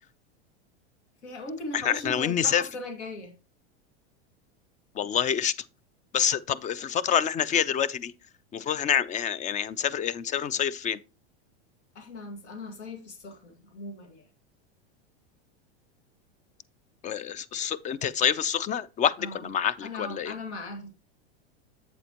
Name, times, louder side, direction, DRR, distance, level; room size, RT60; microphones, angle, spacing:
voice 1, 1.2-3.3 11.9-14.3 19.2-19.5 19.8-20.9, left 2 dB, 90° left, 2.2 m, -39 dB
voice 2, 1.7-2.6 4.9-5.5 6.1-8.1 8.5-11.0 17.0-20.3, left 8 dB, 25° left, 0.4 m, -27 dB
8.1 x 7.6 x 2.9 m
hypercardioid pair, 115°, 33 cm